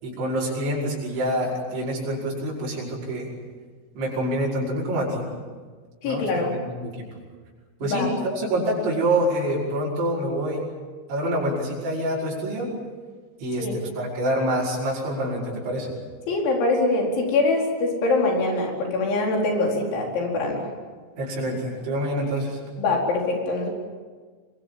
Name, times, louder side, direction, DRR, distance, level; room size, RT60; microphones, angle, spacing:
voice 1, 0.0-3.3 4.0-5.3 6.0-7.0 7.8-10.7 11.1-12.7 13.4-15.9 21.2-22.6, right 1 dB, 80° right, -7 dB, 8.0 m, -26 dB
voice 2, 6.0-6.5 7.8-8.1 13.6-13.8 16.3-20.7 22.8-23.7, left 2 dB, 85° left, 0 dB, 6.9 m, -23 dB
26.5 x 23.0 x 7.7 m, 1.5 s
omnidirectional pair, 5.2 m